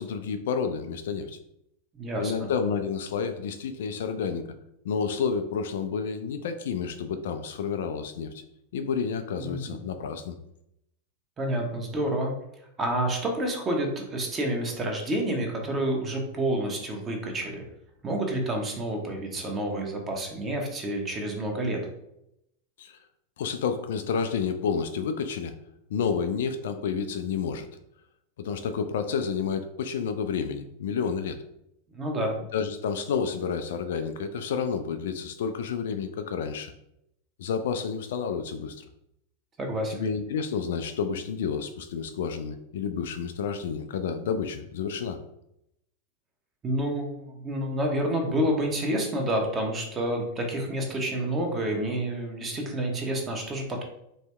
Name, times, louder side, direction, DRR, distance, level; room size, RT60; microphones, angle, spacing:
voice 1, 0.0-1.4 2.2-4.5 4.8-8.4 8.7-10.3 22.8-23.0 23.4-25.5 25.9-27.7 28.4-31.4 32.5-36.7 37.4-38.8 39.9-45.2, left 6 dB, 60° left, 8 dB, 0.3 m, -30 dB
voice 2, 1.9-2.5 9.4-9.8 11.4-12.3 12.8-17.6 18.0-21.8 31.9-32.4 39.6-40.0 46.6-53.8, right 1 dB, 20° right, 2 dB, 0.9 m, -29 dB
3.4 x 2.8 x 3.3 m, 0.80 s
figure-of-eight pair, 90°, 0 cm